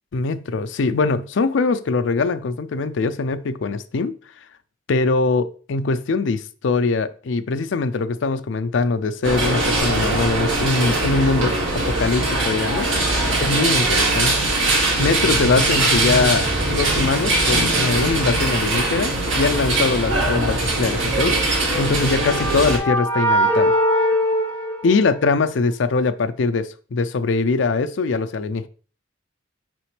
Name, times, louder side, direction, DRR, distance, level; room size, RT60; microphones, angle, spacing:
voice 1, 0.1-4.1 4.9-12.9 13.4-14.5 15.0-23.7 24.8-28.7, left 4 dB, 65° left, 0.4 m, -22 dB
sound 1, 9.2-22.8, right 2 dB, 70° right, 2.0 m, -21 dB
sound 2, 21.6-25.5, equal, 10° left, 0.8 m, -21 dB
6.1 x 5.0 x 3.2 m
head